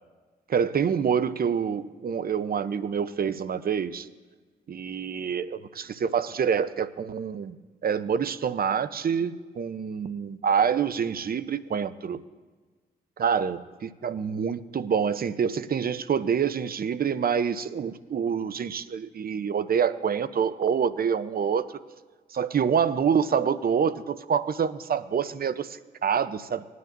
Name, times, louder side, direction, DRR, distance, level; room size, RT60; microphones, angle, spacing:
voice 1, 0.5-4.1 4.7-7.6 7.8-12.2 13.2-21.7 22.3-26.7, right 7 dB, 45° right, 14 dB, 0.7 m, -26 dB
20.0 x 9.5 x 2.7 m, 1.4 s
supercardioid pair, 50°, 21 cm